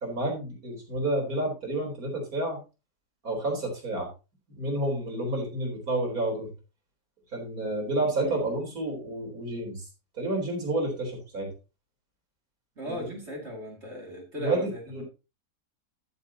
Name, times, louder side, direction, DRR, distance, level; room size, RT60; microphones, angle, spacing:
voice 1, 0.0-2.6 3.2-4.1 4.5-6.5 7.3-9.9 10.2-11.5 12.8-13.0 14.4-15.0, right 1 dB, 60° right, 0 dB, 4.6 m, -30 dB
voice 2, 12.8-15.0, right 1 dB, 40° right, -1 dB, 2.9 m, -37 dB
14.0 x 7.5 x 2.9 m, 0.29 s
omnidirectional pair, 1.7 m